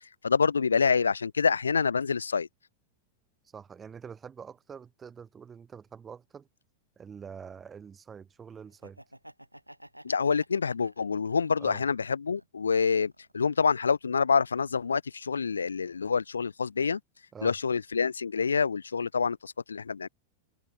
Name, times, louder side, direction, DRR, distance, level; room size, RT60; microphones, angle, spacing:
voice 1, 0.2-2.5 10.0-17.0 17.4-20.1, left 5 dB, 75° left, 0.5 m, -27 dB
voice 2, 3.5-6.5 7.0-9.0 11.6-11.8 17.3-17.5, right 6 dB, 20° right, 4.7 m, -45 dB
Laughter, 8.7-11.9 12.3-13.4, right 1 dB, 90° right, 2.5 m, -52 dB
figure-of-eight pair, 90°, 0 cm